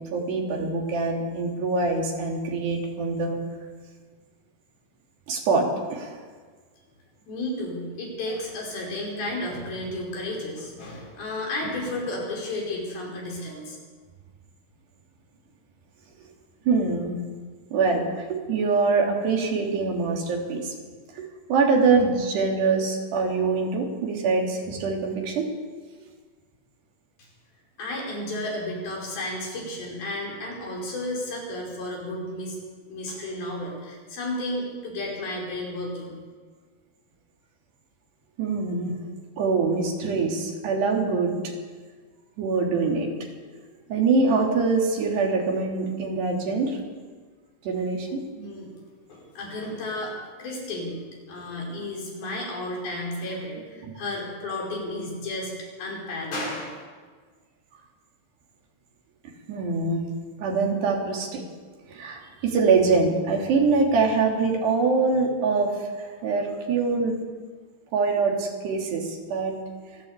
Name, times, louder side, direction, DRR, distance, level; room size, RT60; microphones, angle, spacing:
voice 1, 0.1-3.4 5.3-6.2 16.7-17.2 17.7-20.7 21.2-25.5 38.4-39.0 39.4-41.4 42.4-43.1 43.9-46.8 47.6-48.2 53.8-53.9 59.5-60.1 60.4-61.4 61.9-67.2 67.9-69.6, right 4 dB, 80° right, 0 dB, 5.4 m, -24 dB
voice 2, 7.3-13.8 27.8-32.6 32.9-36.2 48.3-48.7 49.1-50.1 50.4-51.0 51.3-56.8, left 1 dB, 65° left, -2 dB, 7.1 m, -32 dB
25.0 x 15.0 x 8.3 m, 1.5 s
omnidirectional pair, 4.7 m